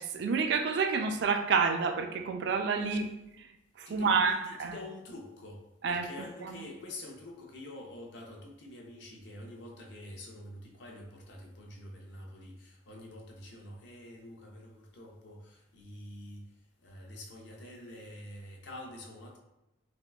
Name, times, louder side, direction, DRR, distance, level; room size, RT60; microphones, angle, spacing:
voice 1, 0.0-3.1 3.4-3.5 3.8-4.8 5.8-6.6, right 5 dB, 60° right, 6 dB, 0.3 m, -29 dB
voice 2, 3.9-16.5 16.8-19.4, left 1 dB, 60° left, 1 dB, 0.5 m, -47 dB
3.5 x 2.3 x 2.2 m, 0.92 s
head